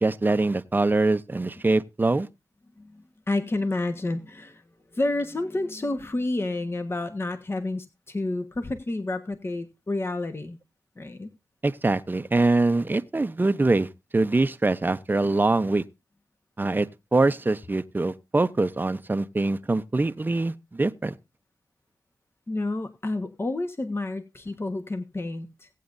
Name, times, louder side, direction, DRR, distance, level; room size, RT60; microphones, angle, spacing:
voice 1, 0.0-2.3 11.6-15.8 16.6-21.1, right 2 dB, 30° right, 0.7 m, -24 dB
voice 2, 2.8-4.6 4.9-10.6 11.0-11.3 22.5-25.7, left 2 dB, 35° left, 1.3 m, -30 dB
18.0 x 8.5 x 2.6 m
cardioid pair, 65°, 7 cm